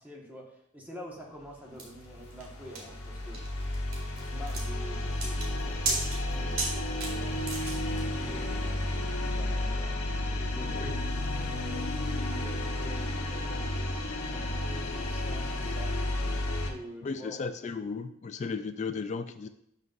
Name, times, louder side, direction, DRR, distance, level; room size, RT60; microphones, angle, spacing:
voice 1, 0.0-3.4 4.3-7.4 7.7-10.0 10.3-11.0 11.3-16.0 16.6-17.4, equal, 10° right, -1 dB, 1.3 m, -47 dB
sound 1, 1.8-16.7, left 1 dB, 85° left, 1.0 m, -32 dB
sound 2, 1.8-8.0, right 3 dB, 65° right, 2.0 m, -36 dB
voice 2, 17.0-19.5, left 4 dB, 35° left, 8 dB, 0.3 m, -35 dB
11.0 x 5.4 x 2.5 m, 0.76 s
head